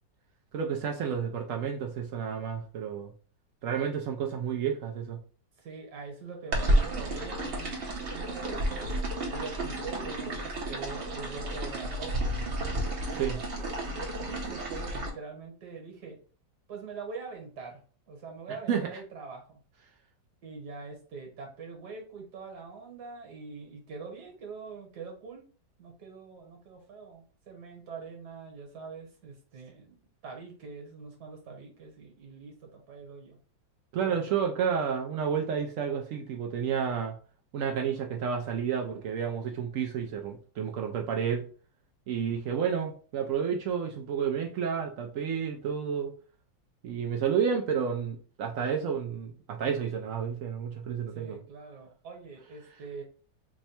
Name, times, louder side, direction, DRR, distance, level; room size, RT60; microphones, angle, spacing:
voice 1, 0.5-3.1 3.6-5.2 13.1-13.4 18.7-19.0 33.9-37.2 37.5-41.4 42.1-46.1 46.8-51.4, right 7 dB, 85° right, 2 dB, 0.7 m, -30 dB
voice 2, 5.6-7.8 8.1-8.9 9.3-12.4 13.1-16.2 16.7-17.8 18.1-19.6 20.4-25.5 25.8-33.4 34.0-34.5 51.1-53.0, right 4 dB, 65° right, 2 dB, 1.6 m, -44 dB
sound 1, 6.5-15.1, right 1 dB, 50° right, 0.7 m, -31 dB
3.5 x 2.1 x 4.1 m, 0.40 s
omnidirectional pair, 1.9 m